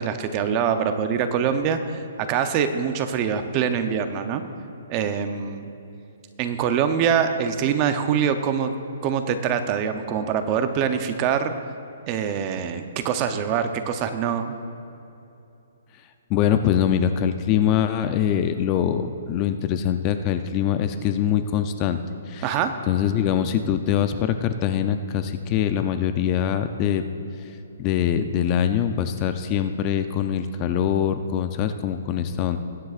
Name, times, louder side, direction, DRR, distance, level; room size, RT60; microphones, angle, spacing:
voice 1, 0.0-4.4 4.9-5.7 6.4-8.7 9.0-11.5 12.1-14.5 22.4-22.7, right 7 dB, 25° right, 8 dB, 0.6 m, -24 dB
voice 2, 16.3-22.0 22.3-22.6 22.9-27.0 27.8-32.6, left 9 dB, 25° left, 9 dB, 0.5 m, -23 dB
21.0 x 9.3 x 2.5 m, 2.9 s
hypercardioid pair, 160°, 0 cm